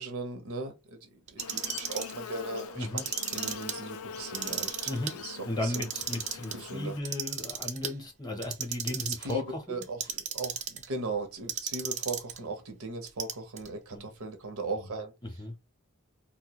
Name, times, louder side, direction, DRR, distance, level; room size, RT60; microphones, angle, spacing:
voice 1, 0.0-3.0 3.3-5.9 6.5-6.9 9.2-15.1, right 3 dB, 85° right, 0.6 m, -38 dB
Clock, 1.3-2.1 2.8-3.7 4.2-5.1 5.6-6.5 7.1-7.9 8.4-9.3 9.8-10.9 11.5-12.4 13.1-13.7, right 8 dB, 35° right, 0.3 m, -34 dB
Buzz, 1.4-7.0, left 6 dB, 80° left, 0.3 m, -43 dB
voice 2, 5.4-9.8 13.9-14.1 15.2-15.5, left 2 dB, 20° left, 0.6 m, -35 dB
2.1 x 2.1 x 2.7 m
head